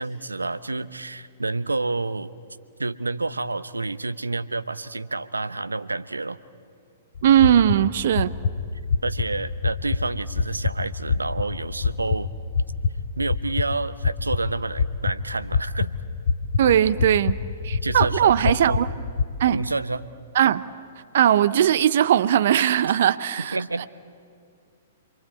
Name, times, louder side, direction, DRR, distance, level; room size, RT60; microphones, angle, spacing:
voice 1, 0.0-2.3 2.8-6.4 9.0-12.3 13.2-15.9 17.8-18.8 19.5-20.1 23.5-23.9, right 3 dB, 90° right, 14 dB, 0.9 m, -29 dB
sound 1, 7.2-19.2, left 5 dB, 60° left, 2.5 m, -27 dB
voice 2, 7.2-8.3 16.6-17.4 17.6-18.9 19.4-19.6 20.3-20.6 21.1-23.9, right 10 dB, 60° right, 14 dB, 0.8 m, -19 dB
28.0 x 23.0 x 8.6 m, 2.3 s
figure-of-eight pair, 115°, 0 cm